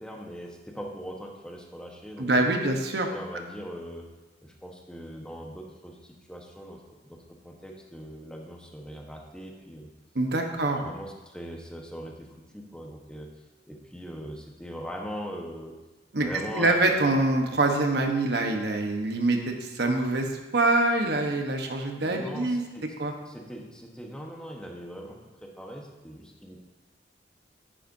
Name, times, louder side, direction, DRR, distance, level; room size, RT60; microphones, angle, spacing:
voice 1, 0.0-2.5 3.1-4.1 4.6-5.9 6.3-6.8 7.1-7.2 7.4-9.9 10.4-12.3 12.5-13.3 13.7-15.7 16.2-17.1 22.0-22.9 23.3-25.1 25.6-26.7, equal, 5° left, 0 dB, 1.1 m, -40 dB
voice 2, 2.2-3.1 10.1-10.9 16.1-16.3 16.5-20.3 20.5-22.6 23.0-23.1, right 2 dB, 65° right, 3 dB, 1.1 m, -25 dB
10.0 x 9.9 x 2.7 m, 1.1 s
head